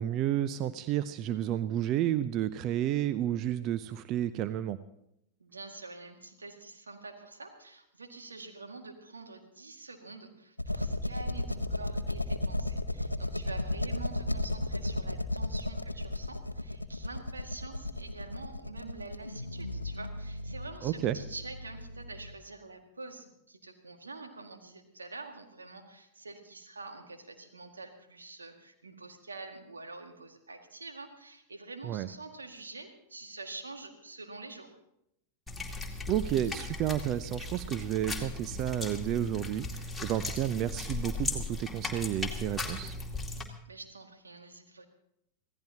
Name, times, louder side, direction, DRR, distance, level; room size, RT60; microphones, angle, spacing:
voice 1, 0.0-4.8 20.8-21.2 31.8-32.1 36.1-43.0, right 11 dB, 40° right, 14 dB, 0.6 m, -31 dB
voice 2, 5.4-34.8 43.7-44.8, right 3 dB, 75° right, 4 dB, 2.0 m, -46 dB
sound 1, 10.6-22.4, left 1 dB, 85° left, 0.7 m, -35 dB
sound 2, 35.5-43.4, left 2 dB, 5° left, 2.4 m, -37 dB
25.5 x 16.0 x 2.9 m, 0.78 s
figure-of-eight pair, 90°, 0 cm